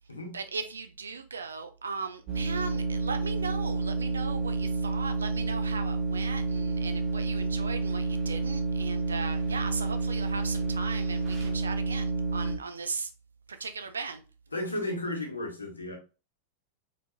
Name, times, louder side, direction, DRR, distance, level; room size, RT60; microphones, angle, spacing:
voice 1, 0.3-13.1 13.5-14.2, right 4 dB, 75° right, 0.6 m, -38 dB
sound 1, 2.3-12.5, right 3 dB, 35° right, 1.6 m, -30 dB
voice 2, 14.5-16.0, left 1 dB, 80° left, 1.3 m, -33 dB
4.3 x 4.2 x 2.2 m
figure-of-eight pair, 90°, 0 cm